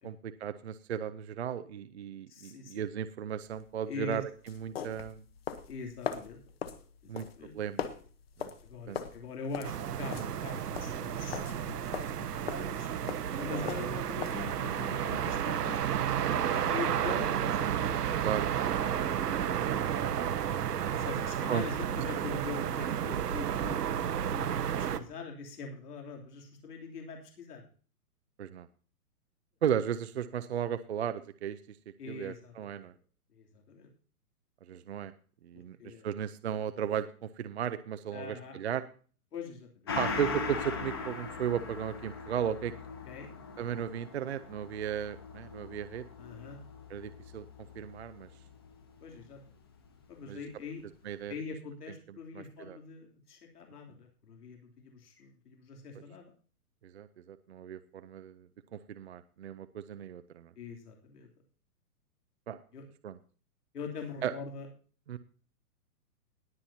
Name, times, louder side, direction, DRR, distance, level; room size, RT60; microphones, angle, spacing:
voice 1, 0.0-5.2 7.1-7.3 7.5-7.9 8.4-8.5 8.9-9.0 10.1-10.3 13.5-13.7 18.2-18.5 19.3-19.4 21.5-21.6 23.9-24.0 28.4-28.7 29.6-31.8 32.1-32.9 34.6-35.1 35.4-38.8 40.0-42.7 43.6-46.0 46.9-47.4 47.7-48.3 50.3-50.4 51.0-51.3 52.3-52.8 56.8-60.5 62.5-62.6 63.0-63.2 64.2-64.3 65.1-65.2, right 9 dB, 45° right, 10 dB, 0.6 m, -35 dB
voice 2, 2.3-2.8 3.9-4.2 5.7-6.4 7.0-7.5 8.6-12.9 13.4-18.2 20.9-24.5 24.8-27.6 32.0-32.7 33.3-33.9 35.5-36.1 38.1-38.6 39.3-39.9 43.1-43.3 46.2-46.6 49.0-49.4 50.1-50.8 51.3-56.3 60.6-61.3 62.7-62.9 63.7-64.7, left 4 dB, 80° left, 1 dB, 3.1 m, -43 dB
sound 1, 3.4-14.4, left 8 dB, 40° left, 1.1 m, -41 dB
sound 2, 9.6-25.0, right 9 dB, 80° right, 1.2 m, -32 dB
Gong, 39.9-48.8 49.2-49.3, left 4 dB, 15° left, 0.6 m, -40 dB
20.5 x 7.6 x 2.8 m, 0.40 s
hypercardioid pair, 170°, 46 cm